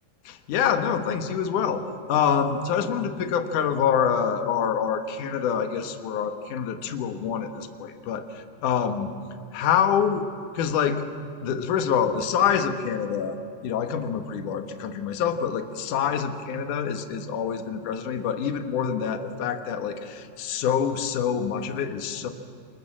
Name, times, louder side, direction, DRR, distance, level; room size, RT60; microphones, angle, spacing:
voice 1, 0.2-1.8 2.1-9.1 9.5-10.2 10.5-11.0 11.4-13.4 13.6-22.3, left 7 dB, 60° left, 7 dB, 2.7 m, -26 dB
27.0 x 26.5 x 7.5 m, 2.3 s
omnidirectional pair, 4.5 m